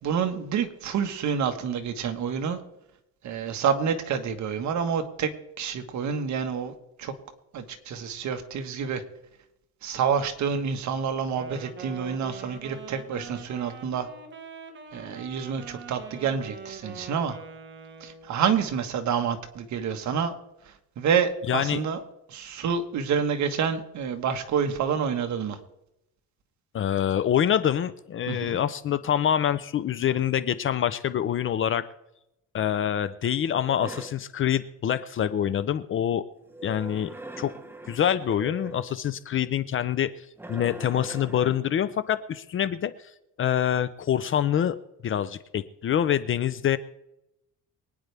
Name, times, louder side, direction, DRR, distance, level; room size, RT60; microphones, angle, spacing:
voice 1, 0.0-2.6 3.2-5.3 5.6-6.7 7.0-7.1 7.5-9.0 9.8-14.1 14.9-17.4 18.0-20.3 21.0-22.0 22.3-25.6 28.3-28.6, right 7 dB, 55° right, 6 dB, 1.5 m, -28 dB
Wind instrument woodwind instrument, 11.3-18.4, right 5 dB, 35° right, 1.2 m, -43 dB
voice 2, 21.5-21.8 26.7-31.9 32.5-36.2 36.6-37.5 37.9-40.1 40.5-42.9 43.4-44.8 45.0-46.8, left 9 dB, 35° left, 14 dB, 0.5 m, -25 dB
sound 1, 33.4-34.3 36.5-39.0 40.4-41.7, right 2 dB, 5° right, 0.8 m, -41 dB
24.0 x 9.5 x 3.4 m, 0.87 s
cardioid pair, 145°, 34 cm